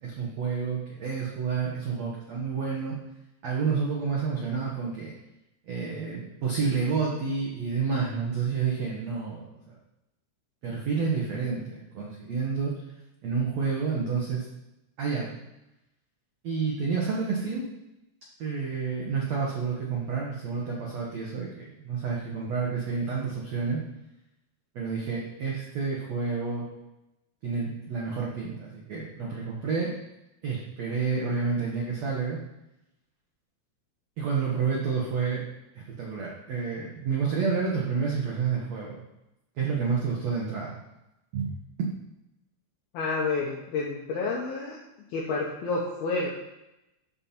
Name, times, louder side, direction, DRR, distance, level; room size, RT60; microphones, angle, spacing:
voice 1, 0.0-3.0 3.4-5.1 5.7-9.7 10.6-12.7 13.2-14.4 15.0-15.3 16.4-17.7 18.4-23.8 24.7-26.7 27.4-29.9 30.4-32.4 34.2-35.4 35.7-39.0 39.6-40.8 41.3-41.5 41.8-41.9, right 5 dB, 85° right, -3 dB, 1.5 m, -29 dB
voice 2, 42.9-44.8 45.1-46.3, left 3 dB, 70° left, -4 dB, 2.6 m, -29 dB
13.5 x 5.5 x 4.4 m, 0.91 s
omnidirectional pair, 5.4 m